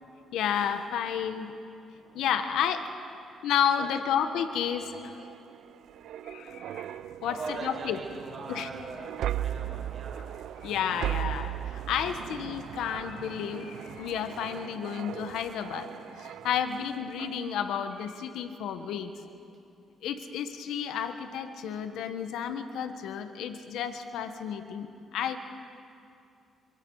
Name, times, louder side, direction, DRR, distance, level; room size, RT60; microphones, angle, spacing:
voice 1, 0.3-1.5 2.1-2.9 3.4-5.3 6.3-6.8 7.2-8.0 8.5-8.7 10.6-15.9 16.2-19.1 20.0-25.4, left 8 dB, 85° left, 8 dB, 1.4 m, -31 dB
sound 1, 4.5-16.8 17.2-17.4, right 11 dB, 75° right, 0.5 m, -38 dB
voice 2, 7.2-10.3 10.7-11.1 16.3-16.5, right 3 dB, 55° right, -1 dB, 6.7 m, -41 dB
28.5 x 25.0 x 4.9 m, 2.6 s
cardioid pair, 90°, 0 cm